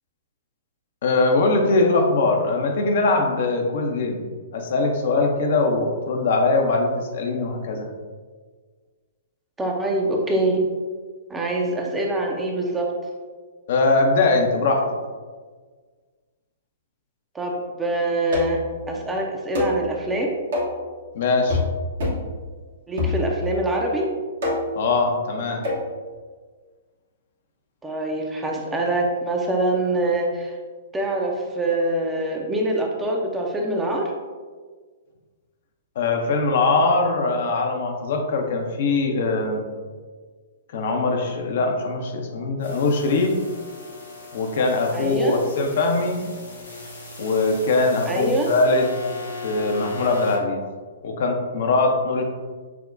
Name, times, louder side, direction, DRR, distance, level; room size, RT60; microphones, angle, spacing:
voice 1, 1.0-4.2 4.5-7.9 13.7-15.0 21.1-21.6 24.7-25.7 36.0-39.6 40.7-43.4 44.3-46.2 47.2-48.9 49.4-50.6 51.0-52.2, left 3 dB, 55° left, 3 dB, 0.5 m, -21 dB
voice 2, 9.6-10.6 11.3-12.9 17.3-18.6 18.9-20.3 22.9-24.1 27.8-30.5 30.9-34.1 44.9-45.4 48.1-48.5, right 1 dB, 10° right, 0 dB, 0.5 m, -24 dB
sound 1, 18.3-18.7 19.6-19.8 20.5-20.8 21.5-21.7 22.0-22.3 23.0-23.6 24.4-24.8 25.6-25.9, left 2 dB, 65° right, 1.1 m, -25 dB
sound 2, 42.6-50.4, left 3 dB, 75° left, 1.0 m, -37 dB
5.8 x 2.1 x 2.5 m, 1.5 s
figure-of-eight pair, 115°, 0 cm